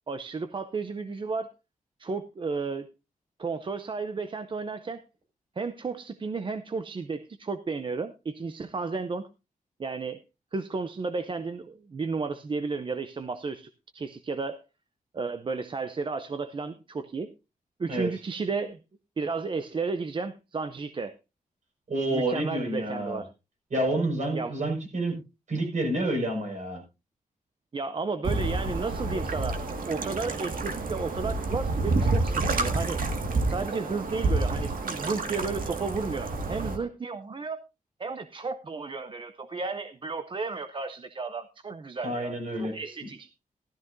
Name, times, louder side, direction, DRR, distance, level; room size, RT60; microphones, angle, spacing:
voice 1, 0.1-1.5 2.0-2.9 3.4-5.0 5.6-9.3 9.8-10.2 10.5-14.6 15.1-17.3 17.8-18.8 19.2-21.1 22.1-23.3 24.3-24.5 27.7-33.0 33.5-37.6 38.0-43.3, right 4 dB, 35° right, 10 dB, 0.6 m, -33 dB
voice 2, 21.9-23.2 23.7-25.2 25.5-26.8 42.0-42.7, right 1 dB, 55° right, 2 dB, 5.4 m, -28 dB
sound 1, 28.2-36.8, right 3 dB, 75° right, 1.9 m, -29 dB
15.0 x 13.0 x 2.6 m, 0.27 s
wide cardioid pair, 175°, 15 cm